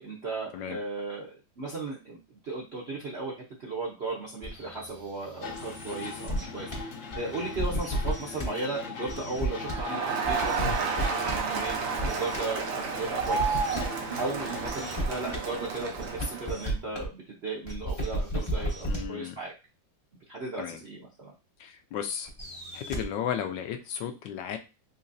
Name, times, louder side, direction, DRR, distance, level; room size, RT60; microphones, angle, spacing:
voice 1, 0.0-11.8 12.1-13.6 14.2-19.5 20.3-21.3, right 3 dB, 60° right, -4 dB, 0.7 m, -36 dB
sound 1, 4.4-6.8 7.1-8.5 9.1-9.8 10.2-11.4 11.7-12.4 13.2-13.8 14.6-15.4 16.0-17.1 17.7-19.1 22.3-23.0, right 1 dB, 25° left, 0.6 m, -34 dB
sound 2, 5.4-14.7, left 5 dB, 60° left, 0.9 m, -41 dB
Crowd, 9.6-16.6, right 5 dB, 85° right, 1.5 m, -31 dB
voice 2, 18.9-19.3 20.6-20.8 21.6-22.3 22.7-24.6, left 9 dB, 75° left, 7 dB, 1.2 m, -34 dB
4.0 x 2.9 x 2.6 m, 0.30 s
omnidirectional pair, 2.0 m